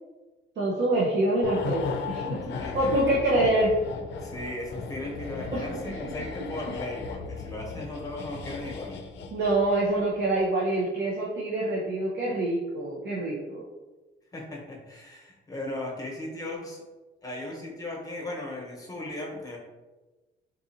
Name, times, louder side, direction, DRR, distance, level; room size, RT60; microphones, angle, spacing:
voice 1, 0.6-2.4 2.7-3.7 5.5-5.6 9.3-13.6, right 1 dB, 60° right, -6 dB, 0.8 m, -25 dB
sound 1, 1.4-10.0 10.2-10.4, left 5 dB, 65° left, 0.4 m, -37 dB
voice 2, 2.5-3.6 4.2-9.0 14.3-16.8 17.2-19.6, left 1 dB, 20° left, -2 dB, 1.0 m, -37 dB
4.0 x 2.6 x 2.7 m, 1.2 s
cardioid pair, 90°, 20 cm